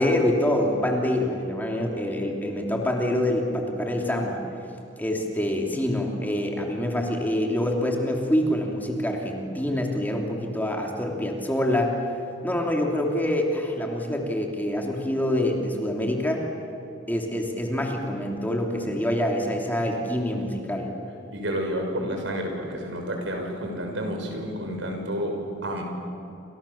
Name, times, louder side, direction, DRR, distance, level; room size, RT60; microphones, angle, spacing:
voice 1, 0.0-4.4 5.0-11.9 12.4-16.4 17.1-20.9, left 1 dB, 10° left, 0 dB, 3.1 m, -26 dB
voice 2, 21.3-25.8, equal, 75° right, 3 dB, 6.3 m, -30 dB
29.5 x 27.5 x 7.3 m, 2.8 s
head